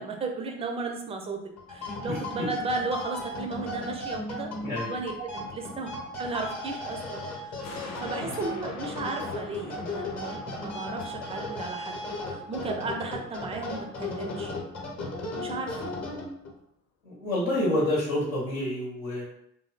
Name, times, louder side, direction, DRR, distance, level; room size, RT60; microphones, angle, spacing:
voice 1, 0.0-1.4 1.7-4.5 4.9-7.7 8.0-12.0 12.3-14.5 15.4-16.0, right 3 dB, 15° right, 3 dB, 0.4 m, -35 dB
sound 1, 1.6-16.5, left 2 dB, 40° left, 0.9 m, -36 dB
voice 2, 2.1-2.5 4.6-4.9 8.2-8.3 17.0-19.2, left 1 dB, 80° left, -5 dB, 1.0 m, -28 dB
sound 2, 7.6-14.3 14.7-14.8, left 4 dB, 60° left, 0.5 m, -46 dB
2.7 x 2.5 x 2.4 m, 0.73 s
figure-of-eight pair, 50°, 41 cm